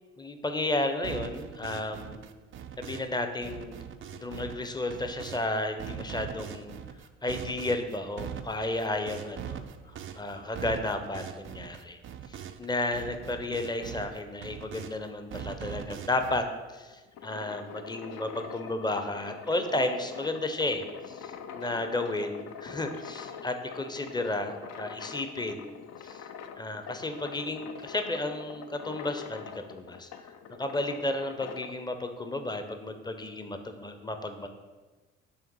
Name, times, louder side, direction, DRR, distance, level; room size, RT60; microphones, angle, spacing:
voice 1, 0.2-2.2 2.8-3.8 4.1-6.7 7.2-9.6 10.2-12.0 12.3-16.5 16.7-25.8 26.0-26.2 26.6-34.5, left 2 dB, 10° left, 7 dB, 0.7 m, -33 dB
sound 1, 1.0-3.2 3.4-5.5 5.8-12.7 12.9-15.0 15.3-16.4, right 8 dB, 35° right, 0.5 m, -41 dB
sound 2, 16.9-31.7, left 7 dB, 45° left, 0.5 m, -44 dB
5.7 x 3.5 x 5.4 m, 1.3 s
hypercardioid pair, 50°, 36 cm